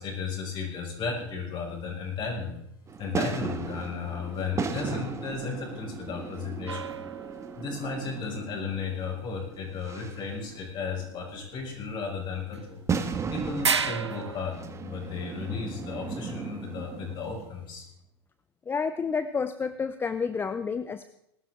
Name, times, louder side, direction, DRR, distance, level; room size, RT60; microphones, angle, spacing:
voice 1, 0.0-2.5 3.0-6.9 7.5-12.8 13.3-14.5 14.8-17.8, left 5 dB, 35° left, -1 dB, 5.9 m, -34 dB
sound 1, 2.9-17.5, right 5 dB, 20° right, 1.4 m, -36 dB
sound 2, 6.7-7.9 12.5-12.6 12.9-13.0 13.6-14.6, right 6 dB, 85° right, 0.6 m, -31 dB
voice 2, 18.7-21.0, left 5 dB, 15° left, 13 dB, 0.6 m, -30 dB
20.0 x 12.5 x 3.7 m, 0.79 s
figure-of-eight pair, 90°, 14 cm